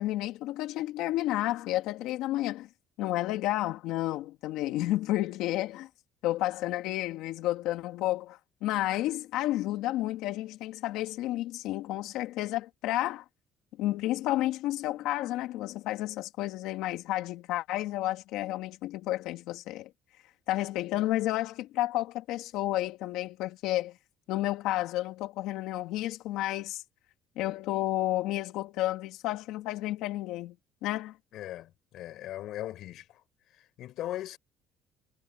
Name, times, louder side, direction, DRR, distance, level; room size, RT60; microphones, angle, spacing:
voice 1, 0.0-2.7 3.0-5.9 6.2-13.2 13.8-19.9 20.5-23.9 24.3-26.8 27.4-30.5 30.8-31.1, left 15 dB, 75° left, 2.9 m, -31 dB
voice 2, 31.3-33.2 33.8-34.4, left 13 dB, 55° left, 7.5 m, -38 dB
cardioid pair, 170°, 0 cm